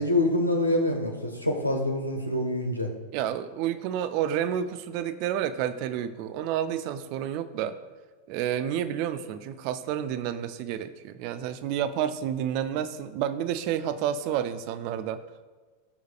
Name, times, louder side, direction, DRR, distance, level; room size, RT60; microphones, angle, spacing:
voice 1, 0.0-2.9, left 1 dB, 90° left, 1 dB, 1.3 m, -26 dB
voice 2, 3.1-7.8 8.3-15.2, right 10 dB, 45° right, 12 dB, 0.6 m, -30 dB
17.0 x 6.4 x 2.4 m, 1.3 s
figure-of-eight pair, 90°, 0 cm